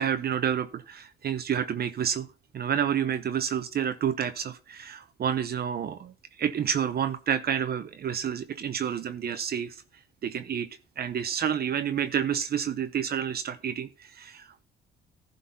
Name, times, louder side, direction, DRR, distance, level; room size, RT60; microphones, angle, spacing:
voice 1, 0.0-2.3 2.5-9.8 10.2-10.7 11.0-14.6, right 8 dB, 50° right, 10 dB, 0.7 m, -29 dB
11.5 x 3.9 x 5.5 m, 0.34 s
cardioid pair, 90°, 20 cm